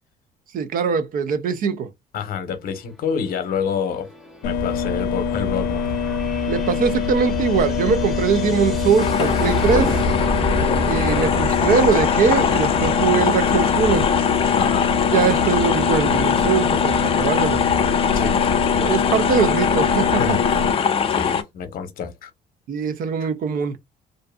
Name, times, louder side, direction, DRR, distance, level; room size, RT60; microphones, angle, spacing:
voice 1, 0.5-1.9 6.5-10.0 10.9-14.1 15.1-17.6 18.8-20.4 22.7-23.8, right 6 dB, 55° right, 0.4 m, -21 dB
voice 2, 2.1-4.1 4.4-5.9 14.5-14.9 18.1-18.4 20.2-20.4 21.1-22.3 23.2-23.3, left 6 dB, 60° left, 0.8 m, -27 dB
sound 1, 3.2-16.7, equal, ahead, 0.7 m, -30 dB
sound 2, 4.4-20.7, left 6 dB, 90° left, 0.5 m, -24 dB
sound 3, 9.0-21.4, left 7 dB, 35° left, 0.4 m, -22 dB
2.5 x 2.4 x 2.3 m
cardioid pair, 110°, 17 cm